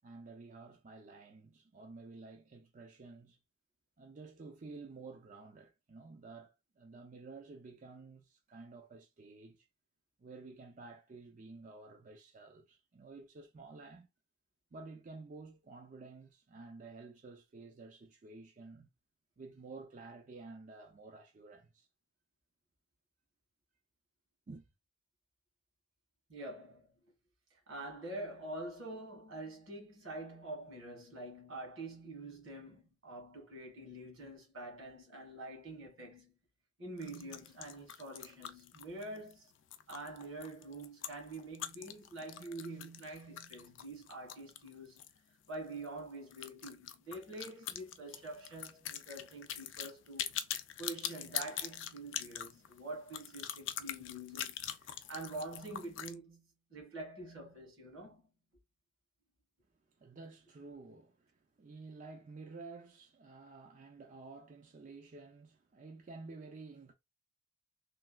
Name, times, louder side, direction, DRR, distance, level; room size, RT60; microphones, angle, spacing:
voice 1, 0.0-3.4 4.0-9.7 10.2-14.1 14.7-18.9 19.4-21.9 24.5-24.7 60.0-66.9, right 3 dB, 40° right, 0.4 m, -51 dB
voice 2, 26.3-26.9 27.5-36.4 36.8-39.5 39.9-45.0 45.3-50.3 50.8-58.3, right 2 dB, 85° right, 1.7 m, -46 dB
sound 1, 37.0-45.2 45.4-45.5 45.8-45.9 46.3-56.1, left 10 dB, 65° left, 0.4 m, -43 dB
3.2 x 2.3 x 2.3 m
head